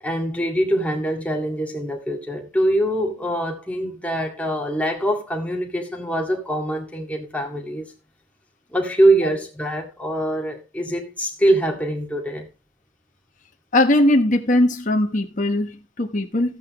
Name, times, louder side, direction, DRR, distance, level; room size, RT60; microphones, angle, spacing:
voice 1, 0.0-7.9 8.7-12.5, right 1 dB, 5° left, 2.0 m, -23 dB
voice 2, 13.7-16.6, left 1 dB, 40° left, 1.2 m, -19 dB
14.0 x 8.5 x 3.1 m
head